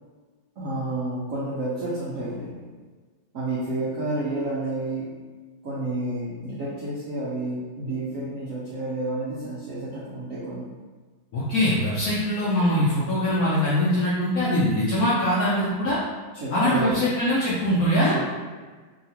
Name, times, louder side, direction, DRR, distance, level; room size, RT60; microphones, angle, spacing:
voice 1, 0.6-2.7 3.3-5.2 5.6-10.7 16.3-17.0 18.1-18.2, right 2 dB, 90° right, -8 dB, 0.7 m, -30 dB
voice 2, 11.3-16.0 16.5-18.1, equal, 70° left, -8 dB, 0.8 m, -22 dB
3.0 x 2.8 x 2.8 m, 1.4 s
omnidirectional pair, 2.2 m